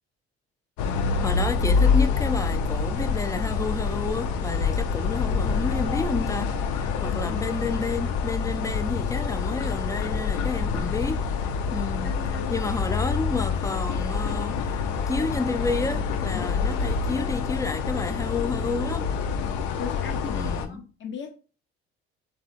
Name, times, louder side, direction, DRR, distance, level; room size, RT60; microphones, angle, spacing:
sound 1, 0.8-20.7, left 5 dB, 70° left, 0.5 m, -26 dB
voice 1, 1.2-12.1 12.5-19.1 20.3-20.8, left 3 dB, 10° left, 0.4 m, -31 dB
voice 2, 7.0-7.4 12.0-12.6 16.3-16.5 19.7-21.4, left 6 dB, 40° left, 0.9 m, -37 dB
3.4 x 2.6 x 2.4 m
hypercardioid pair, 55°, 31 cm